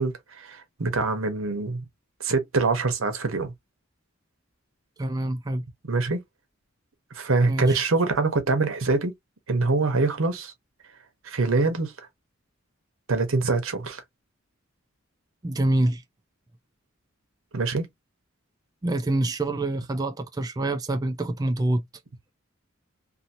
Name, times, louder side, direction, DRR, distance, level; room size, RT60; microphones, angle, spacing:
voice 1, 0.0-1.8 2.2-3.5 5.9-6.2 7.1-9.1 9.5-10.5 11.2-11.9 13.1-14.0 17.5-17.9, right 3 dB, 85° right, 0.9 m, -24 dB
voice 2, 5.0-5.6 7.5-7.8 15.4-16.0 18.8-21.8, right 1 dB, 20° right, 0.3 m, -26 dB
2.7 x 2.7 x 2.6 m
head